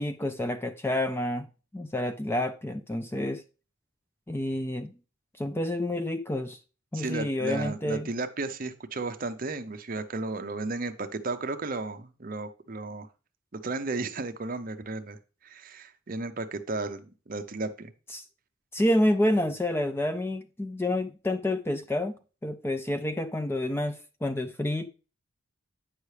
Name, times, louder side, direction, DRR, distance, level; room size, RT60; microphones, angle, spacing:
voice 1, 0.0-1.5 1.7-3.4 4.3-4.9 5.4-6.6 6.9-8.1 18.1-18.2 18.7-24.9, left 1 dB, 10° left, 0.3 m, -29 dB
voice 2, 6.9-13.1 13.5-15.2 15.4-17.9, right 3 dB, 40° right, 0.7 m, -34 dB
9.4 x 5.6 x 3.3 m
head